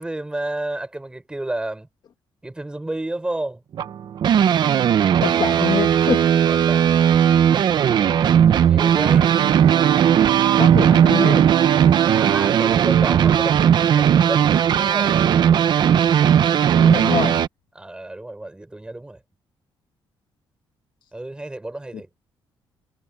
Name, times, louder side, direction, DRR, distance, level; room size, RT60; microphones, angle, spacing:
voice 1, 0.0-1.9 2.4-3.6 6.3-6.9 8.6-9.3 12.1-15.2 17.7-19.2 21.1-22.1, right 2 dB, 10° right, 6.5 m, -31 dB
sound 1, 3.7-17.5, right 9 dB, 55° right, 0.9 m, -17 dB
voice 2, 5.2-6.2 10.6-11.4 16.8-17.3, left 8 dB, 55° left, 1.6 m, -25 dB
Bowed string instrument, 8.9-13.7, right 12 dB, 80° right, 0.7 m, -24 dB
cardioid pair, 135°, 9 cm